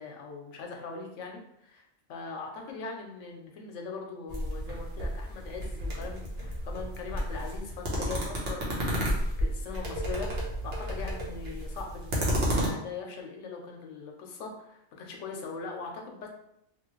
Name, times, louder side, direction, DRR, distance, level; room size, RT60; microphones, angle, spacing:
voice 1, 0.0-16.3, left 4 dB, 80° left, 2 dB, 1.0 m, -41 dB
sound 1, 4.3-12.7, equal, 70° right, 1.1 m, -32 dB
2.9 x 2.4 x 3.0 m, 0.79 s
omnidirectional pair, 1.3 m